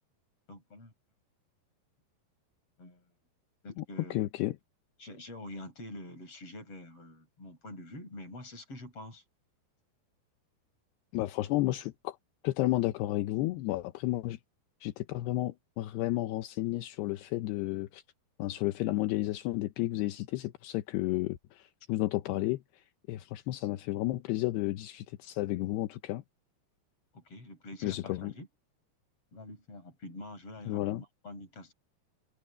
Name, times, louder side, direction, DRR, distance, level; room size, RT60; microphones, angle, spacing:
voice 1, 0.5-0.9 2.8-3.1 3.6-4.2 5.0-9.2 27.1-28.5 29.3-31.7, left 1 dB, 35° left, 5.6 m, -46 dB
voice 2, 4.1-4.6 11.1-12.2 12.4-14.4 14.8-18.0 18.4-26.2 27.8-28.3 30.7-31.0, left 17 dB, 80° left, 2.8 m, -32 dB
omnidirectional pair, 4.9 m